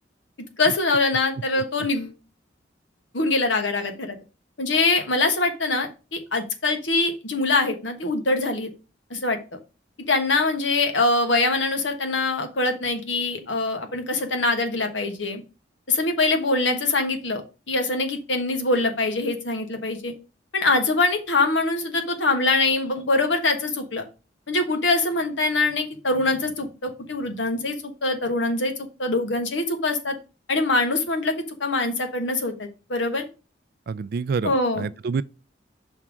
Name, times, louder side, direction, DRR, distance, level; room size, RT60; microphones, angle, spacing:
voice 1, 0.6-2.2 3.1-4.2 4.6-8.7 9.1-9.6 10.1-15.4 15.9-17.4 17.7-20.1 20.5-24.0 24.5-30.2 30.5-33.2 34.4-34.9, left 2 dB, 85° left, 1.3 m, -23 dB
voice 2, 33.9-35.2, right 5 dB, 55° right, 0.3 m, -27 dB
5.7 x 3.7 x 6.0 m
head